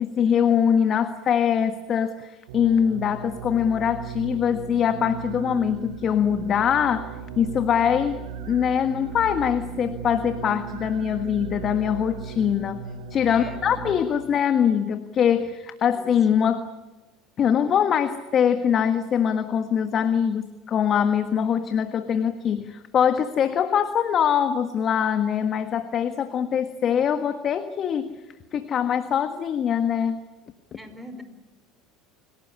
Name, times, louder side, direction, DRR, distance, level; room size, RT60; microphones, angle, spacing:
voice 1, 0.0-7.1 7.4-16.7 17.4-28.2 28.5-30.2, left 8 dB, 45° left, 10 dB, 1.5 m, -23 dB
sound 1, 2.5-14.0, right 7 dB, 75° right, 4.5 m, -37 dB
voice 2, 13.3-13.9 15.9-16.1 30.7-31.2, equal, 5° right, 10 dB, 4.9 m, -42 dB
27.5 x 18.0 x 9.9 m, 1.1 s
hypercardioid pair, 80°, 0 cm